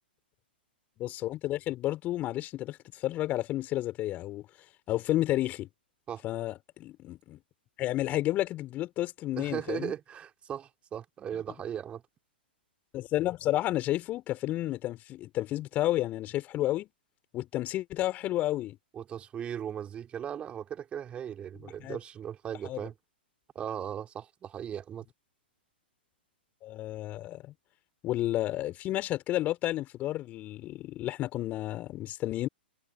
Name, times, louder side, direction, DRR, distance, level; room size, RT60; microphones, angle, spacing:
voice 1, 1.0-4.5 4.9-5.7 6.2-7.4 7.8-9.9 12.9-16.9 17.3-18.8 21.6-22.0 22.6-22.8 26.6-27.5 28.0-32.5, left 15 dB, 30° left, 4.8 m, -31 dB
voice 2, 9.4-12.0 18.9-22.9 23.5-25.0, right 9 dB, 20° right, 3.0 m, -37 dB
figure-of-eight pair, 110°, 6 cm